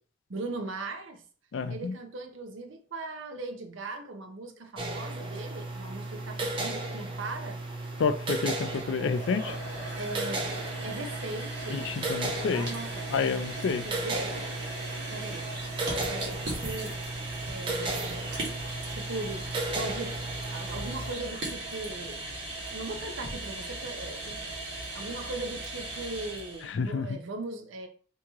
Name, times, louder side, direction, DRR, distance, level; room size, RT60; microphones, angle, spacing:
voice 1, 0.3-1.2 1.7-7.6 9.9-10.5 10.8-11.9 12.2-13.1 13.8-14.4 15.1-15.5 15.8-17.0 17.4-18.3 18.9-19.5 19.7-20.2 20.5-22.2 22.7-24.4 24.9-27.9, right 2 dB, 80° right, 5 dB, 0.7 m, -39 dB
voice 2, 1.5-1.9 8.0-9.6 11.7-12.7 13.1-13.8 26.7-27.2, left 5 dB, 75° left, 11 dB, 0.4 m, -29 dB
sound 1, 4.8-21.1, right 2 dB, 25° right, 0.5 m, -35 dB
sound 2, 8.5-26.7, right 2 dB, 55° right, 1.3 m, -38 dB
3.0 x 2.7 x 3.5 m, 0.43 s
head